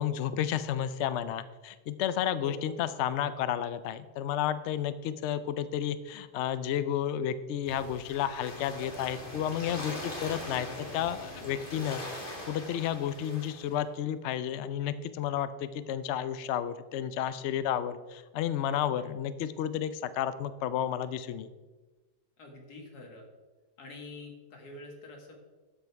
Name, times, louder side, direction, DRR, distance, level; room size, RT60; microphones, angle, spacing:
voice 1, 0.0-12.0 12.5-21.5, left 10 dB, 90° left, 13 dB, 0.6 m, -32 dB
sound 1, 7.7-13.7, left 1 dB, 30° left, 2.1 m, -41 dB
voice 2, 22.4-23.3 23.8-25.4, left 3 dB, 65° left, 2 dB, 2.2 m, -46 dB
13.0 x 5.4 x 4.6 m, 1.2 s
omnidirectional pair, 1.9 m